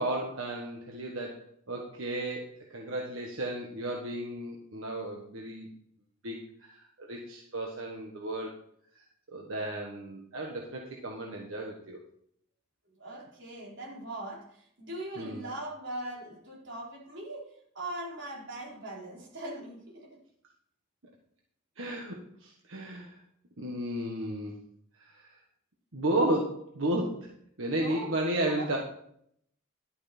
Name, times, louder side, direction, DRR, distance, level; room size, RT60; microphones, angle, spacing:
voice 1, 0.0-5.7 6.2-8.6 9.3-12.0 15.2-15.4 21.8-23.2 23.6-24.6 25.0-25.3 25.9-27.3 27.6-28.8, right 1 dB, 85° right, -1 dB, 1.5 m, -33 dB
voice 2, 13.0-17.5 17.7-20.2 27.7-28.1 28.5-28.8, right 1 dB, 60° right, -5 dB, 4.5 m, -40 dB
11.5 x 8.6 x 4.4 m, 0.68 s
head